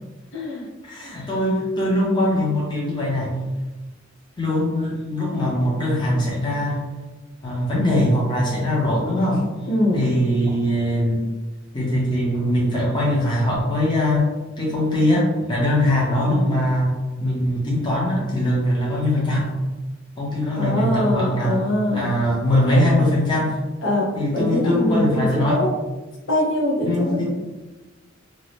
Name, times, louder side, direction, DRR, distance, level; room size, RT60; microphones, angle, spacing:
voice 1, 0.3-0.7 9.7-10.1 20.6-22.1 22.7-23.1 23.8-24.1 24.3-25.7 26.3-27.2, left 1 dB, 65° left, -4 dB, 0.8 m, -23 dB
voice 2, 0.8-3.4 4.4-6.8 7.4-9.4 9.9-11.2 11.7-14.3 14.6-16.9 17.2-19.5 20.2-21.7 21.9-23.6 24.2-25.6 26.8-27.2, left 1 dB, 25° left, -5 dB, 0.6 m, -21 dB
2.6 x 2.0 x 3.1 m, 1.2 s
head